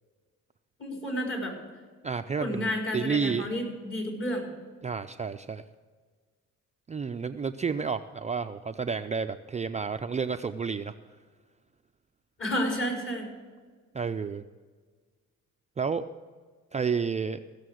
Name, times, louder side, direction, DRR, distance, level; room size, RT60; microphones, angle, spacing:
voice 1, 0.8-1.5 2.4-4.5 12.4-13.3, equal, 40° left, 0 dB, 4.7 m, -31 dB
voice 2, 2.0-3.5 4.8-5.6 6.9-10.9 13.9-14.4 15.8-16.0 16.7-17.4, right 5 dB, 25° right, 7 dB, 0.4 m, -30 dB
16.5 x 6.8 x 6.3 m, 1.5 s
cardioid pair, 90°, 30 cm